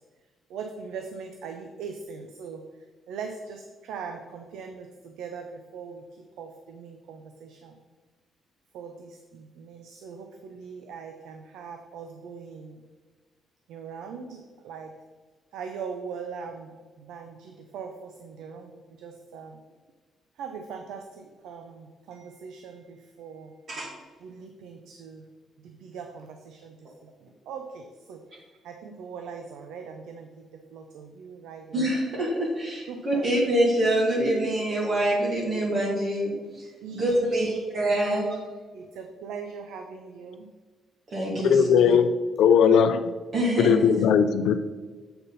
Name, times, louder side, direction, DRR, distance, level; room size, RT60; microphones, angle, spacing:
voice 1, 0.5-2.6 3.1-6.0 6.4-7.8 8.7-12.9 13.7-14.9 15.5-16.7 17.0-19.6 20.4-23.5 24.2-25.2 25.6-30.5 30.7-31.7 32.9-33.3 36.8-37.6 38.1-38.2 38.7-40.5, right 5 dB, 85° right, 5 dB, 0.6 m, -41 dB
voice 2, 31.7-38.3 41.1-41.6 43.3-43.8, right 1 dB, 50° right, -4 dB, 2.3 m, -25 dB
voice 3, 41.4-42.1 42.4-43.0 43.6-44.6, left 7 dB, 80° left, 10 dB, 0.5 m, -19 dB
7.9 x 4.1 x 5.5 m, 1.4 s
cardioid pair, 90°, 0 cm